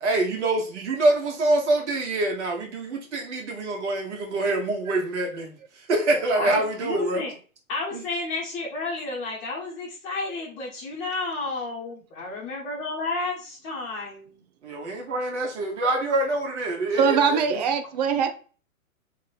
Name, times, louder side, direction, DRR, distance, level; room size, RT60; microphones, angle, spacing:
voice 1, 0.0-5.6 5.9-7.2 7.9-8.0 14.6-17.6, right 2 dB, 55° right, 1.4 m, -25 dB
voice 2, 6.3-7.3 7.7-14.4, left 3 dB, 25° left, 1.6 m, -31 dB
voice 3, 17.0-18.3, right 6 dB, 30° right, 0.5 m, -22 dB
3.3 x 3.2 x 4.1 m
figure-of-eight pair, 115°, 42 cm